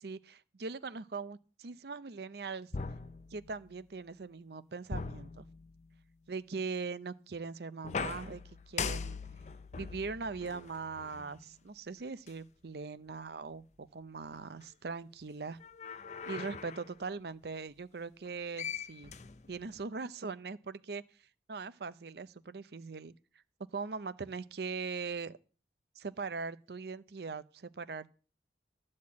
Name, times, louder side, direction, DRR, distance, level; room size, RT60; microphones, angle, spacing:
voice 1, 0.0-2.7 3.3-5.5 6.3-8.4 8.7-9.2 9.7-15.6 16.3-19.1 19.5-21.0 21.5-23.1 23.7-25.4 26.0-28.1, right 4 dB, 65° right, 0.6 m, -41 dB
sound 1, 2.7-3.8 4.9-6.0 7.8-11.4 12.3-12.4 15.6-16.9 18.3-18.4 18.6-19.8, left 5 dB, 40° left, 0.5 m, -41 dB
12.5 x 4.3 x 8.4 m
head